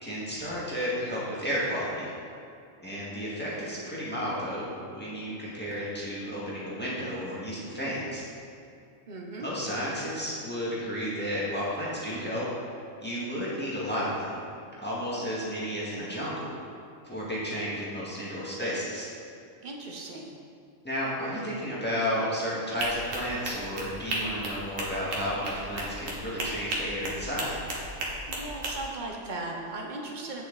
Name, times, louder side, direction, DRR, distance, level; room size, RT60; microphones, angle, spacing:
voice 1, 0.0-2.1 2.8-8.3 9.4-12.5 13.0-14.4 14.8-16.5 17.0-19.1 20.8-27.6, equal, 5° left, -8 dB, 1.9 m, -32 dB
voice 2, 9.1-9.5 19.6-20.3 28.3-30.4, right 2 dB, 40° right, 0 dB, 1.0 m, -37 dB
sound 1, 22.8-28.7, right 2 dB, 70° right, 1.6 m, -34 dB
8.6 x 6.8 x 4.1 m, 2.4 s
omnidirectional pair, 1.4 m